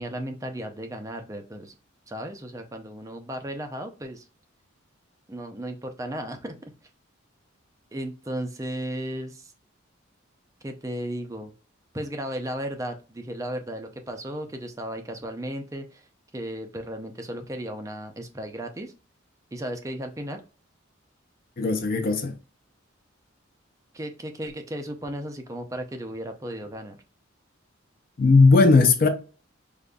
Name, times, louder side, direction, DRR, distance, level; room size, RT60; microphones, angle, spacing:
voice 1, 0.0-1.7 2.1-4.3 5.3-6.5 7.9-9.5 10.6-11.5 11.9-16.1 16.3-18.9 19.5-20.4 23.9-27.0, right 1 dB, 15° right, 0.4 m, -35 dB
voice 2, 21.6-22.3 28.2-29.1, left 3 dB, 45° left, 0.5 m, -17 dB
5.0 x 2.5 x 2.2 m
head